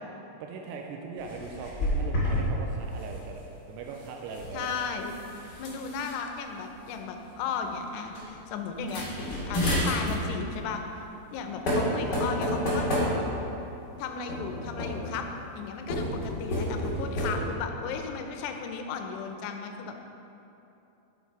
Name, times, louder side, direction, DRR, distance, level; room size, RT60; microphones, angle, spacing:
voice 1, 0.4-3.4 3.7-4.7, right 4 dB, 85° right, 1 dB, 2.7 m, -40 dB
sound 1, 1.2-2.5 2.7-3.1 4.2-6.1 6.9-7.0 7.3-7.6 8.1-8.2 8.8-10.3 11.2-11.4 11.7-13.5 14.3-15.2 15.8-17.3, left 1 dB, 35° left, 2.0 m, -30 dB
voice 2, 4.5-5.1 5.6-9.1 9.5-11.0 11.3-12.9 14.0-15.3 15.6-20.0, left 6 dB, 85° left, 4 dB, 2.8 m, -35 dB
8.2 x 6.8 x 4.7 m, 2.9 s
omnidirectional pair, 4.8 m